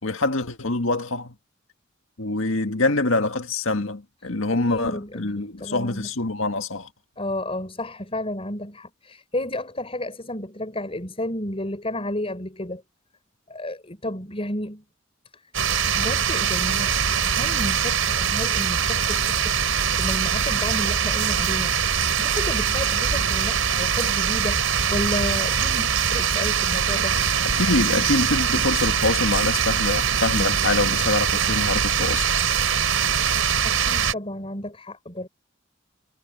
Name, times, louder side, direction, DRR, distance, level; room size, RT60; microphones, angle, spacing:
voice 1, 0.0-1.4 2.2-6.9 27.4-32.3, left 2 dB, 80° left, 1.9 m, -25 dB
voice 2, 4.6-6.1 7.2-12.8 13.5-14.8 15.3-15.5 16.0-19.5 20.0-27.2 33.6-35.3, left 1 dB, 30° left, 5.8 m, -32 dB
sound 1, 15.5-34.1, right 7 dB, 90° right, 4.4 m, -22 dB
head